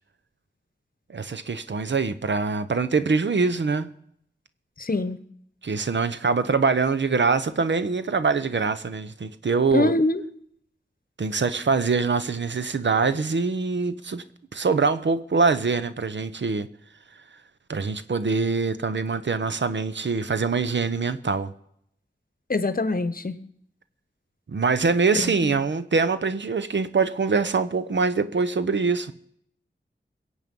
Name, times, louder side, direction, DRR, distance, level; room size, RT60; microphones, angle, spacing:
voice 1, 1.1-3.9 5.6-9.9 11.2-14.2 14.5-16.7 17.7-21.5 24.5-29.1, right 4 dB, 75° right, 0.9 m, -24 dB
voice 2, 4.8-5.2 9.7-10.2 22.5-23.4 25.1-25.5, left 2 dB, 50° left, 1.1 m, -24 dB
22.0 x 8.2 x 5.4 m
wide cardioid pair, 70°, 19 cm